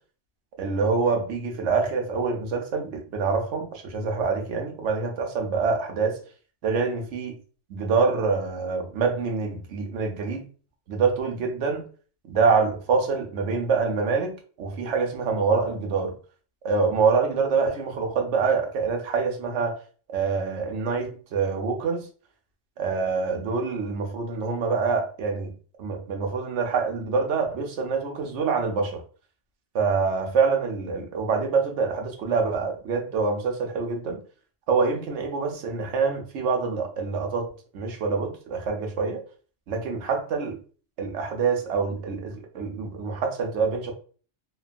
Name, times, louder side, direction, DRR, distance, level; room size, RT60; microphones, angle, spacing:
voice 1, 0.6-6.2 6.6-7.4 7.7-10.5 10.9-11.8 12.3-14.3 14.6-16.1 16.6-19.8 20.1-22.1 22.8-25.5 25.8-29.0 29.7-34.2 34.7-37.5 37.7-39.2 39.7-40.6 41.0-43.9, right 5 dB, 75° right, 1.0 m, -25 dB
3.1 x 2.2 x 2.4 m
omnidirectional pair, 1.2 m